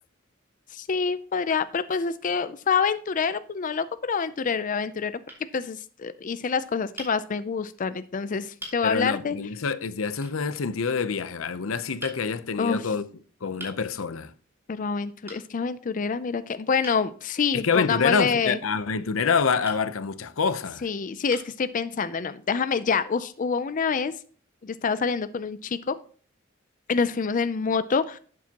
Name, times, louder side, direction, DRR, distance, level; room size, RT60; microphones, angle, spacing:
voice 1, 0.7-5.2 5.5-9.4 12.6-12.9 14.7-18.6 20.8-24.1 24.6-25.9 26.9-28.2, left 5 dB, 40° left, 0.4 m, -27 dB
sound 1, 5.3-5.5 7.0-7.2 8.0-8.1 8.6-8.8 10.2-10.4 12.0-12.2 13.6-13.8 15.3-15.5 16.8-17.0 19.6-19.8 20.7-20.8 21.3-21.6, right 1 dB, 10° right, 3.0 m, -41 dB
voice 2, 8.8-13.1 13.4-14.3 17.5-20.8, left 5 dB, 85° left, 0.7 m, -26 dB
12.0 x 8.4 x 2.9 m
head